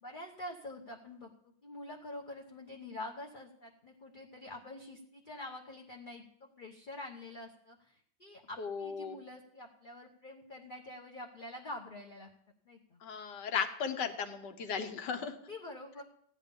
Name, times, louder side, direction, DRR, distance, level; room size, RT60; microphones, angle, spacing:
voice 1, 0.0-1.3 1.6-12.3 12.6-13.0 15.3-16.0, left 1 dB, 35° left, 0 dB, 0.8 m, -46 dB
voice 2, 8.6-9.2 13.0-15.3, left 6 dB, 65° left, 8 dB, 1.6 m, -36 dB
15.0 x 9.8 x 5.3 m, 0.68 s
omnidirectional pair, 2.1 m